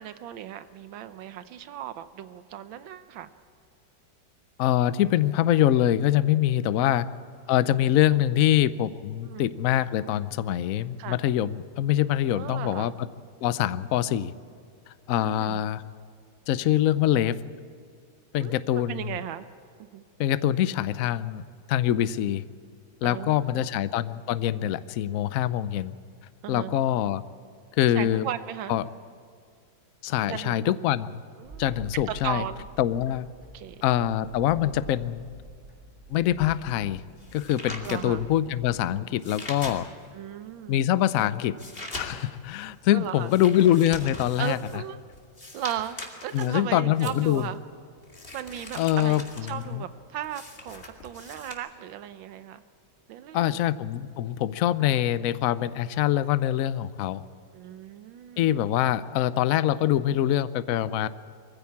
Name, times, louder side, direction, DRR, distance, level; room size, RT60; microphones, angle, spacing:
voice 1, 0.0-3.3 6.8-7.0 9.2-9.5 11.0-11.2 12.3-12.9 15.2-15.6 18.4-19.4 19.8-20.0 23.0-23.6 26.4-26.7 27.9-28.8 30.3-30.7 31.4-32.7 33.5-33.8 37.8-38.3 40.1-40.8 42.9-43.3 44.4-45.0 45.5-46.0 46.2-47.6 48.3-52.6 53.1-53.6 57.5-58.6 60.8-60.9, right 11 dB, 90° right, 11 dB, 1.5 m, -36 dB
voice 2, 4.6-7.1 7.5-13.1 13.4-14.3 15.1-15.8 16.5-17.4 18.3-19.2 20.2-22.4 23.0-26.0 26.5-27.2 27.7-28.3 28.7-28.9 30.0-31.1 31.6-32.4 32.8-33.3 33.8-35.3 36.1-37.0 37.3-39.9 40.7-41.6 41.9-44.6 46.3-47.5 48.8-49.2 49.5-49.8 53.3-57.2 58.4-61.1, left 12 dB, 70° left, 15 dB, 0.8 m, -24 dB
sound 1, 31.4-39.0, right 1 dB, 35° right, 5.8 m, -47 dB
sound 2, 36.4-40.2 40.7-51.5, left 2 dB, 30° left, 2.4 m, -42 dB
22.5 x 15.5 x 8.6 m, 2.3 s
omnidirectional pair, 2.1 m